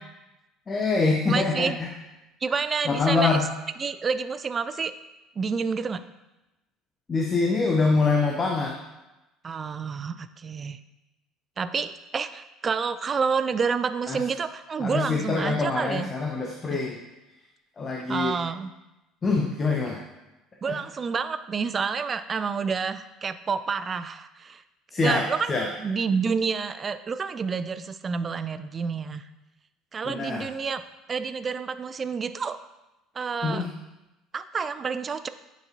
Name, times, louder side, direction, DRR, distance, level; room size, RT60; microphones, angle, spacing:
voice 1, 0.7-1.9 2.9-3.4 7.1-8.7 14.1-14.2 14.8-17.0 17.8-18.3 19.2-20.0 20.6-20.8 24.9-25.7 30.0-30.5 33.4-33.7, left 4 dB, 30° left, 1 dB, 0.7 m, -25 dB
voice 2, 1.3-1.8 2.4-3.4 3.8-4.9 5.4-6.0 9.4-10.8 11.6-16.1 16.7-16.8 18.1-18.7 20.6-24.6 25.0-29.3 29.9-30.8 31.1-32.6 33.2-33.7 34.3-35.3, right 5 dB, 30° right, 12 dB, 0.3 m, -29 dB
7.6 x 4.8 x 2.7 m, 1.0 s
figure-of-eight pair, 60°, 0 cm